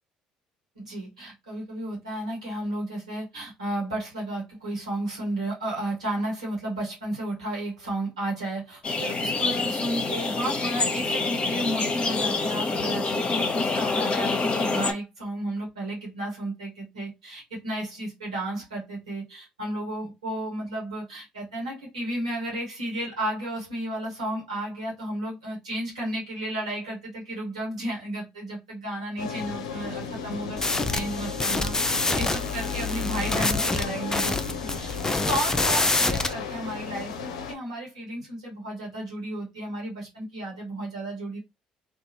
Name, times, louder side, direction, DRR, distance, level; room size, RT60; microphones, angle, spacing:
voice 1, 0.7-30.6 30.9-34.4 34.7-41.4, right 1 dB, 90° right, 1.2 m, -33 dB
sound 1, 8.8-14.9, left 3 dB, 35° left, 0.8 m, -26 dB
sound 2, 29.2-37.5, left 5 dB, 80° left, 0.4 m, -35 dB
sound 3, 30.6-36.3, left 2 dB, 15° left, 0.4 m, -26 dB
2.6 x 2.3 x 2.8 m
hypercardioid pair, 55°, 3 cm